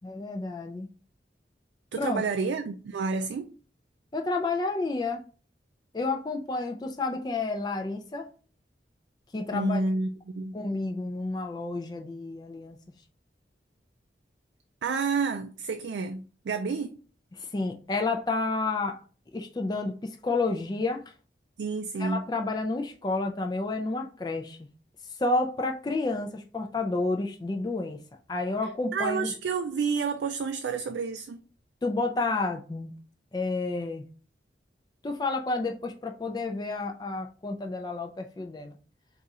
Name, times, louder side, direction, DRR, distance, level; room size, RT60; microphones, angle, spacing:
voice 1, 0.0-0.9 2.0-2.2 4.1-5.2 5.9-8.3 9.3-9.8 10.5-12.8 17.3-19.0 19.3-21.0 22.0-24.6 25.2-28.0 28.3-29.3 31.8-32.9 33.3-34.0 35.0-38.8, left 3 dB, 25° left, 0.3 m, -30 dB
voice 2, 1.9-3.5 9.5-10.5 14.8-17.0 21.6-22.2 28.9-31.4, right 4 dB, 90° right, 0.3 m, -30 dB
3.8 x 2.4 x 4.1 m
head